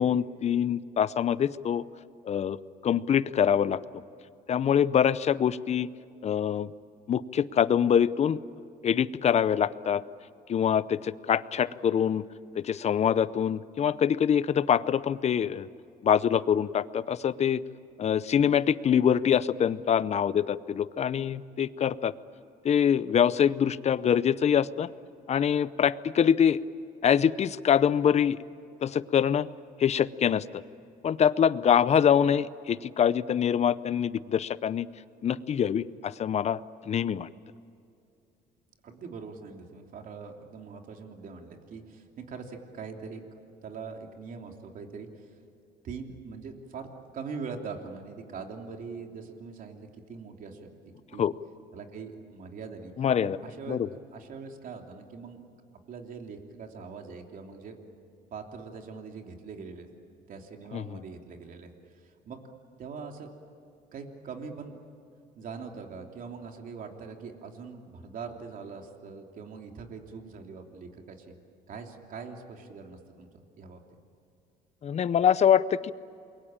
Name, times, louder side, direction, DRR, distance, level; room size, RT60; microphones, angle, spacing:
voice 1, 0.0-1.8 2.2-2.6 2.8-3.8 4.5-5.9 6.2-6.7 7.1-8.4 8.8-10.0 10.5-12.2 12.5-15.7 16.0-17.6 18.0-22.1 22.6-24.9 25.3-26.6 27.0-28.4 28.8-29.5 29.8-30.6 31.0-34.9 35.2-36.6 36.9-37.3 51.2-51.3 53.0-53.4 53.7-53.9 60.7-61.0 74.8-75.9, left 8 dB, 40° left, 17 dB, 0.7 m, -24 dB
voice 2, 38.8-45.3 45.8-46.9 47.1-50.7 51.1-51.3 51.7-52.9 53.2-53.8 54.1-55.4 55.9-57.8 58.3-59.9 60.3-61.7 62.0-62.4 62.8-63.4 63.9-64.8 65.4-71.3 71.7-73.3 73.6-73.8, right 5 dB, 55° right, 3 dB, 3.1 m, -42 dB
28.0 x 22.5 x 8.8 m, 2.6 s
cardioid pair, 110°, 17 cm